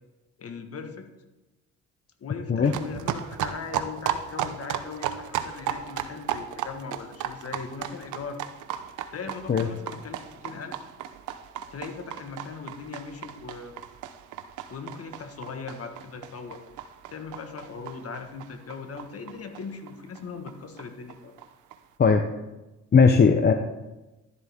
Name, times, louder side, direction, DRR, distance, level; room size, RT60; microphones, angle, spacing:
voice 1, 0.4-1.1 2.2-8.5 9.1-10.8 11.7-13.7 14.7-16.6 17.1-21.3, left 5 dB, 50° left, 7 dB, 1.5 m, -39 dB
sound 1, 2.6-19.9 20.2-20.3 20.5-20.6 20.8-20.9 21.1-21.7, right 10 dB, 80° right, 0.8 m, -35 dB
voice 2, 22.9-23.5, left 5 dB, 35° left, 6 dB, 0.8 m, -18 dB
12.0 x 11.0 x 3.6 m, 1.1 s
cardioid pair, 90°, 30 cm